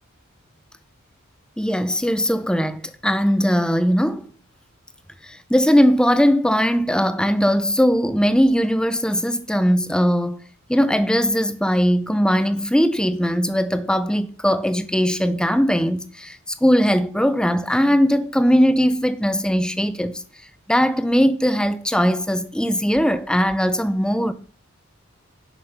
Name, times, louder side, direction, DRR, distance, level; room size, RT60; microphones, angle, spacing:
voice 1, 1.6-4.3 5.2-10.4 10.7-20.2 20.7-24.3, equal, 5° left, 0.5 m, -19 dB
10.0 x 6.2 x 5.5 m
head